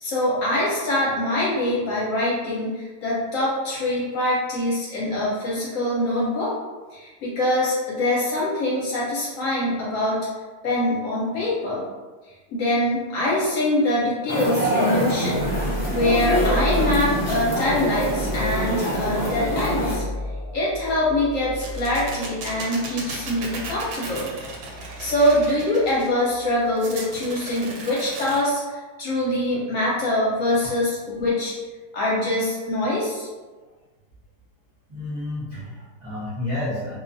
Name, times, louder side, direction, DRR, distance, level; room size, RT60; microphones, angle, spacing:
voice 1, 0.0-6.5 6.9-10.2 10.6-11.8 12.5-15.4 15.9-20.0 20.5-24.3 25.0-31.5 31.9-33.3, left 1 dB, 65° left, -6 dB, 0.9 m, -24 dB
sound 1, 14.3-20.0, equal, 30° left, 0.5 m, -25 dB
sound 2, 15.3-26.7, equal, 55° right, 0.8 m, -33 dB
sound 3, 21.6-26.1 26.8-28.4, right 3 dB, 80° right, 1.1 m, -36 dB
voice 2, 34.9-37.0, left 2 dB, 25° right, -11 dB, 0.6 m, -30 dB
2.5 x 2.3 x 2.5 m, 1.3 s
omnidirectional pair, 1.7 m